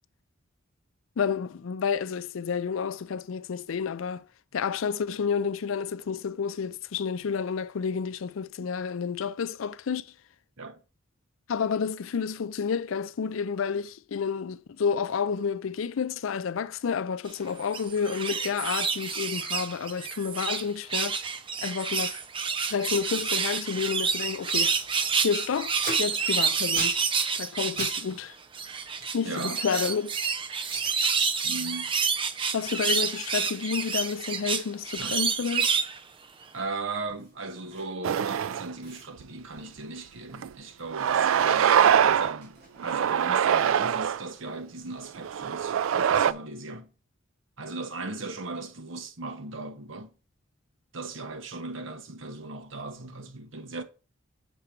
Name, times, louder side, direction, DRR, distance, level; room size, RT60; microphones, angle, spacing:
voice 1, 1.2-4.2 4.5-10.1 11.5-21.2 21.6-22.2 22.7-24.8 25.2-27.0 27.4-28.3 29.1-30.2 32.5-35.7, left 6 dB, 85° left, 0.4 m, -30 dB
sound 1, 17.6-20.6 20.9-28.1 28.5-36.0 36.4-36.5, right 5 dB, 25° right, 0.5 m, -28 dB
Packing tape duct tape, 24.6-24.8 25.1-28.0 28.2-30.1 30.6-31.0 31.4-31.7 32.0-38.2 38.5-38.6 38.8-41.2 41.5-43.4, right 2 dB, 50° right, 3.5 m, -42 dB
voice 2, 29.2-29.6 31.4-31.9 35.0-35.2 36.5-46.9 47.6-50.1 50.9-53.8, right 3 dB, 70° right, 1.1 m, -38 dB
sound 2, 38.0-38.7 39.2-39.3 40.3-40.5 40.9-42.4 42.8-44.2 45.0-46.3, right 8 dB, 90° right, 0.4 m, -23 dB
6.8 x 4.5 x 5.2 m
head